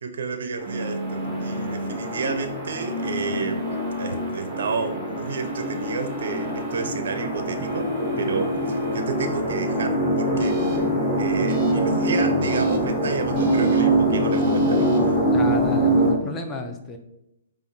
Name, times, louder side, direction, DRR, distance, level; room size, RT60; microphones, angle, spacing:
voice 1, 0.0-3.7 4.0-10.8 11.2-15.2, right 4 dB, 65° right, 7 dB, 0.4 m, -31 dB
sound 1, 0.6-16.1, right 1 dB, 5° right, 1.0 m, -24 dB
sound 2, 0.6-1.9 2.8-4.3 5.2-6.9 7.6-9.0 10.4-10.8 11.5-11.7 12.4-12.8 13.3-13.8 14.3-15.0, left 2 dB, 35° right, 0.7 m, -33 dB
voice 2, 15.3-17.0, left 3 dB, 20° left, 4 dB, 0.5 m, -32 dB
4.9 x 2.4 x 2.6 m, 0.86 s
hypercardioid pair, 130°, 0 cm